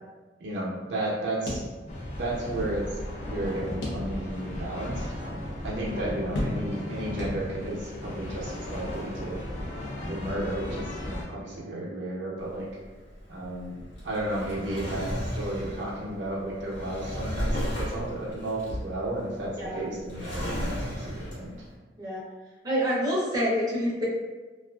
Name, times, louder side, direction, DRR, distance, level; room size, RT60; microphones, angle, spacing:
voice 1, 0.4-1.7 2.1-5.1 5.6-9.5 10.0-12.7 13.3-21.7, right 1 dB, 65° right, -4 dB, 0.6 m, -33 dB
sound 1, 1.5-2.3 2.6-2.7 3.8-4.5 5.0-5.1 6.3-6.9 7.2-7.8, left 1 dB, 90° left, 0.7 m, -34 dB
sound 2, 1.9-11.3, left 1 dB, 40° left, 0.4 m, -36 dB
Drawer open or close, 12.4-21.7, equal, 70° left, 0.9 m, -34 dB
voice 2, 22.6-24.0, equal, 20° right, -7 dB, 0.6 m, -27 dB
2.4 x 2.4 x 2.2 m, 1.3 s
head